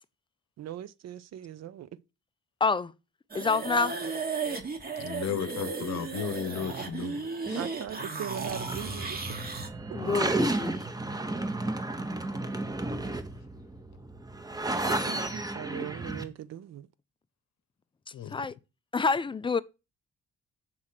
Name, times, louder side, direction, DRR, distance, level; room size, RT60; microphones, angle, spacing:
voice 1, 0.6-1.9 7.6-9.2 14.8-16.9, right 10 dB, 60° right, 0.6 m, -40 dB
voice 2, 2.6-2.9 3.3-3.9 9.9-10.9 18.3-18.5 18.9-19.6, left 4 dB, 15° left, 0.3 m, -27 dB
sound 1, 3.3-9.7, right 4 dB, 30° right, 1.1 m, -35 dB
voice 3, 5.0-7.6 18.1-18.4, left 7 dB, 60° left, 0.8 m, -35 dB
sound 2, 8.5-16.2, right 2 dB, 15° right, 0.8 m, -32 dB
6.1 x 3.2 x 5.7 m
cardioid pair, 90°, 30 cm